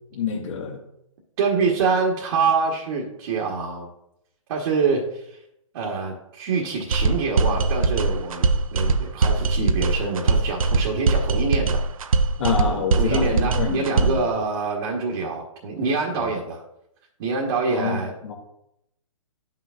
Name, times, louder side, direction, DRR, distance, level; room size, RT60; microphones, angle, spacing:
voice 1, 0.1-0.8 12.4-14.2 16.1-16.3 17.7-18.3, left 5 dB, 60° left, 1 dB, 1.9 m, -27 dB
voice 2, 1.4-3.9 4.5-5.4 5.7-8.4 8.7-11.8 13.0-16.6 17.2-18.3, right 4 dB, 45° right, -2 dB, 1.4 m, -25 dB
sound 1, 6.9-14.3, right 3 dB, 75° right, 0.6 m, -21 dB
10.5 x 5.9 x 2.5 m, 0.80 s
hypercardioid pair, 135°, 18 cm